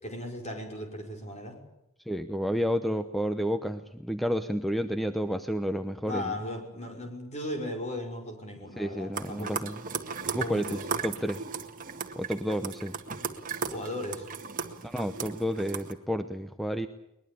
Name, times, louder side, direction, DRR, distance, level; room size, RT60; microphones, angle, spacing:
voice 1, 0.0-1.6 6.1-9.6 10.4-11.0 13.7-14.3, left 1 dB, 30° left, 2 dB, 5.5 m, -37 dB
voice 2, 2.1-6.3 8.8-9.8 10.2-11.4 12.2-12.9 14.8-16.9, equal, ahead, 8 dB, 0.8 m, -30 dB
sound 1, 9.1-15.9, right 5 dB, 40° right, 1.7 m, -36 dB
22.0 x 21.0 x 8.6 m, 0.88 s
head